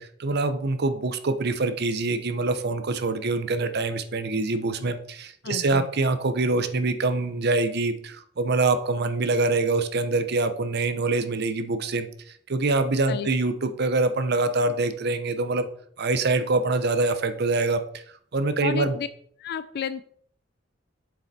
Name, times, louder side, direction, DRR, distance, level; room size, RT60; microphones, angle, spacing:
voice 1, 0.0-12.1 12.5-15.7 16.0-18.0 18.3-19.0, right 3 dB, 55° right, 10 dB, 0.8 m, -25 dB
voice 2, 5.4-5.9 13.1-13.3 18.6-19.1 19.4-20.0, left 7 dB, 55° left, 12 dB, 0.4 m, -32 dB
7.8 x 6.6 x 4.2 m, 0.63 s
head